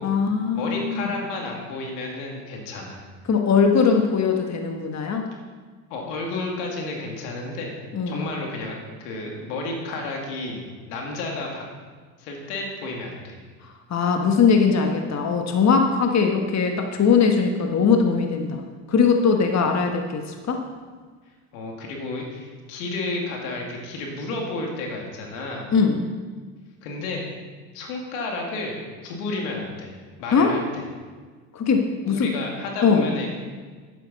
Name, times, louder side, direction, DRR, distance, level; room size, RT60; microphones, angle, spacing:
voice 1, 0.0-1.1 3.3-5.3 7.9-8.2 13.9-18.6 18.9-20.6 25.7-26.0 30.3-30.5 31.5-32.3 32.8-33.1, left 5 dB, 35° left, 4 dB, 1.3 m, -20 dB
voice 2, 0.5-3.0 5.9-7.7 8.1-10.6 10.9-11.6 12.2-13.4 21.5-25.7 26.8-27.3 27.7-28.8 29.0-29.9 30.2-30.6 32.1-33.3, left 2 dB, 85° left, 0 dB, 2.3 m, -31 dB
11.5 x 9.5 x 4.1 m, 1.5 s
supercardioid pair, 75°, 47 cm